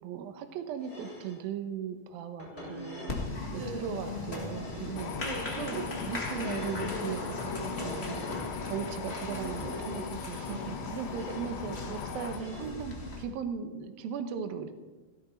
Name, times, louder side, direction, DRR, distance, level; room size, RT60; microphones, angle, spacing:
voice 1, 0.0-3.1 3.5-5.1 5.6-8.2 8.6-10.4 10.9-14.7, right 7 dB, 70° right, 7 dB, 2.5 m, -38 dB
Plate Sliding on Counter, 0.8-1.4 2.4-3.4 4.3-5.0 6.3-7.0 7.8-8.5 9.4-10.1 11.0-11.5 12.3-12.8, left 2 dB, 15° left, 7.3 m, -46 dB
voice 2, 2.5-3.2 3.5-4.1 5.2-5.7 7.6-8.4 9.2-9.8 10.2-11.5 12.7-12.8, right 2 dB, 55° right, -1 dB, 4.8 m, -43 dB
Applause, 3.1-13.2, left 2 dB, 45° left, 0.7 m, -38 dB
sound 1, 5.0-12.4, left 8 dB, 85° left, 3.3 m, -41 dB
17.5 x 17.0 x 4.4 m, 1.2 s
omnidirectional pair, 4.9 m